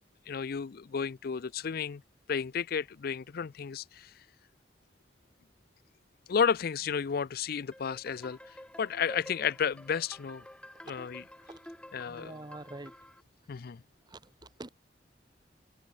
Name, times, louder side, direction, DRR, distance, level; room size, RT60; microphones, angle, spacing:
voice 1, 0.3-2.0 2.3-4.1 6.3-10.5 10.9-11.2 11.9-12.3 13.5-13.8, left 6 dB, 55° left, 0.4 m, -32 dB
sound 1, 7.7-13.2, left 1 dB, 5° left, 3.6 m, -50 dB
voice 2, 12.1-12.9 14.1-14.2 14.6-14.7, right 2 dB, 25° right, 1.0 m, -44 dB
head